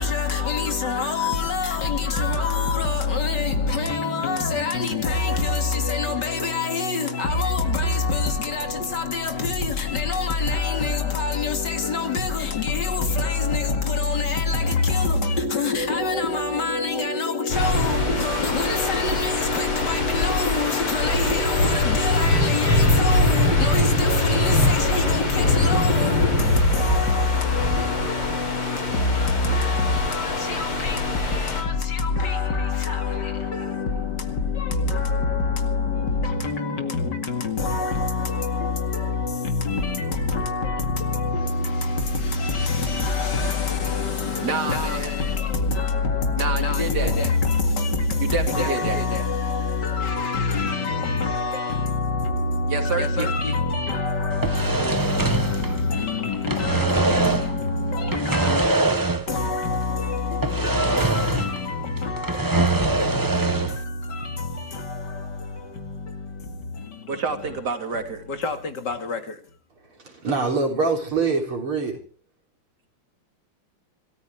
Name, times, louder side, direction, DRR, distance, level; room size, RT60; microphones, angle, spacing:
voice 1, 0.0-58.6 59.3-67.2 68.3-69.4, left 4 dB, 55° left, 2.7 m, -25 dB
sound 1, 17.5-31.6, left 2 dB, 85° left, 5.0 m, -23 dB
voice 2, 44.4-45.2 46.4-47.1 48.2-49.0 52.7-53.3 67.1-68.2, right 4 dB, 50° right, 3.1 m, -28 dB
sound 2, 54.3-56.1 56.3-57.6 58.1-59.5 59.7-59.8 60.4-61.7 62.0-63.8, right 3 dB, 25° right, 0.4 m, -23 dB
voice 3, 70.0-72.0, right 4 dB, 90° right, 4.5 m, -24 dB
26.0 x 14.5 x 3.6 m
omnidirectional pair, 2.3 m